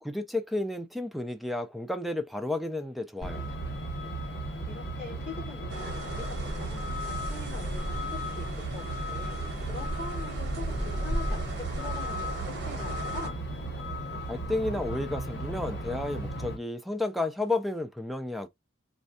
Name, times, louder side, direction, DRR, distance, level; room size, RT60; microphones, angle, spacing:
voice 1, 0.0-3.5 14.3-18.5, left 2 dB, ahead, 0.4 m, -32 dB
Truck, 3.2-16.6, right 1 dB, 55° left, 0.9 m, -34 dB
voice 2, 4.7-13.4, left 3 dB, 40° left, 2.3 m, -43 dB
sound 1, 5.7-13.3, right 2 dB, 55° right, 0.9 m, -39 dB
4.2 x 2.2 x 2.6 m
head